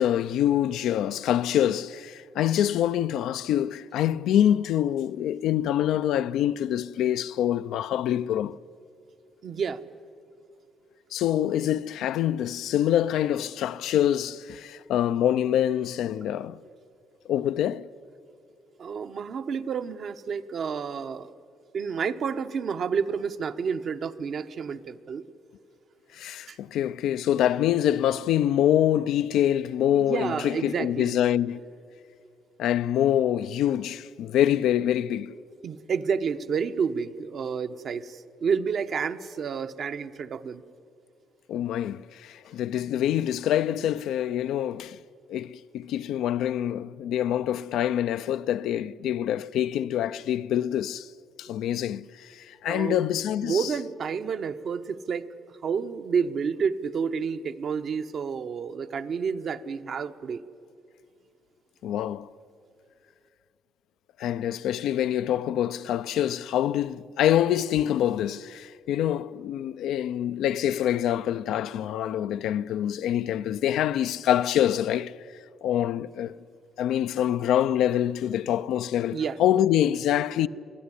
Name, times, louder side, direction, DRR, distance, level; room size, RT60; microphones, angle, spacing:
voice 1, 0.0-8.6 11.1-16.6 17.3-17.9 26.1-31.6 32.6-35.3 41.5-45.0 45.3-51.1 51.4-53.7 61.8-62.3 64.2-75.2 75.6-76.3 76.8-80.5, left 11 dB, 85° left, 0.5 m, -25 dB
voice 2, 9.4-9.8 18.8-21.3 21.7-25.3 26.5-26.6 29.9-31.2 35.6-40.6 52.7-53.0 53.4-55.3 55.6-60.4 79.1-79.4, right 6 dB, 60° right, 0.9 m, -30 dB
24.0 x 16.5 x 9.9 m
cardioid pair, 90°, 0 cm